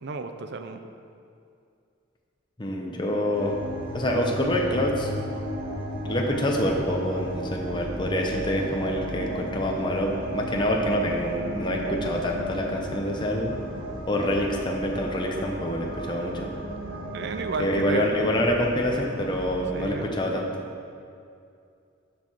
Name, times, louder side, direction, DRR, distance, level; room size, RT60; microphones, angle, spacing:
voice 1, 0.0-0.8 17.1-18.1 19.7-20.1, right 4 dB, 55° right, 7 dB, 0.5 m, -33 dB
voice 2, 2.6-3.6 3.9-5.1 6.1-13.5 14.1-16.5 17.6-20.7, left 1 dB, 25° left, 0 dB, 0.7 m, -26 dB
sound 1, 3.3-19.9, right 1 dB, 80° right, 1.4 m, -34 dB
13.0 x 4.6 x 4.6 m, 2.4 s
head